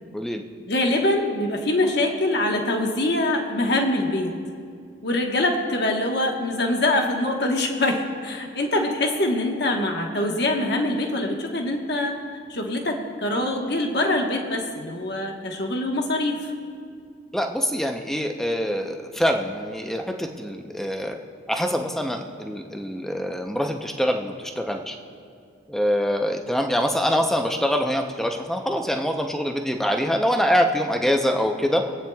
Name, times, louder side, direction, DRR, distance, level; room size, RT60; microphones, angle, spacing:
voice 1, 0.1-0.4 17.3-21.2 21.5-25.0 25.7-32.0, equal, ahead, 3 dB, 0.6 m, -24 dB
voice 2, 0.7-4.3 5.0-12.2 12.5-16.5, left 1 dB, 55° left, 2 dB, 1.2 m, -24 dB
25.5 x 8.7 x 2.3 m, 2.3 s
head